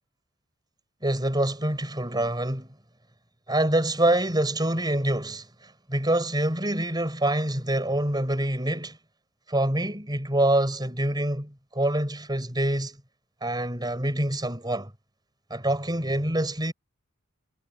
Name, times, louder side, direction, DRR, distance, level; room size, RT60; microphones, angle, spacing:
voice 1, 1.0-2.7 3.5-9.0 9.5-13.0 13.4-14.9 15.5-16.7, right 1 dB, 20° right, 5.1 m, -26 dB
head